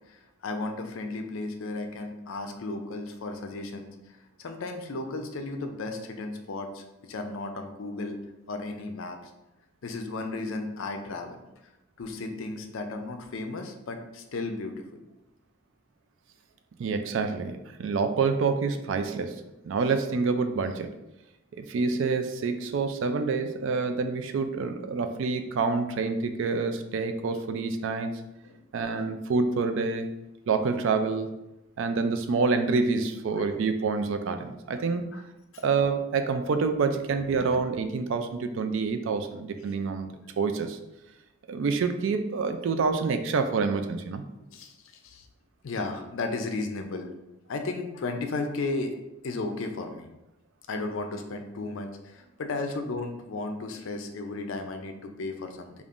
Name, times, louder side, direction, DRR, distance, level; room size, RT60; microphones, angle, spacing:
voice 1, 0.1-8.2 8.5-9.3 9.8-11.4 12.0-15.0 28.4-28.6 29.0-29.1 33.4-33.5 35.1-35.2 35.5-35.6 37.4-37.6 44.5-45.3 45.6-47.1 47.5-49.0 49.2-50.1 50.7-55.7, left 3 dB, 65° left, 5 dB, 0.4 m, -34 dB
voice 2, 16.8-20.9 21.6-28.1 28.7-30.1 30.5-31.3 31.8-35.2 35.6-40.1 40.4-40.8 41.5-44.2, right 4 dB, 60° right, 8 dB, 0.3 m, -27 dB
5.2 x 2.4 x 2.4 m, 0.94 s
head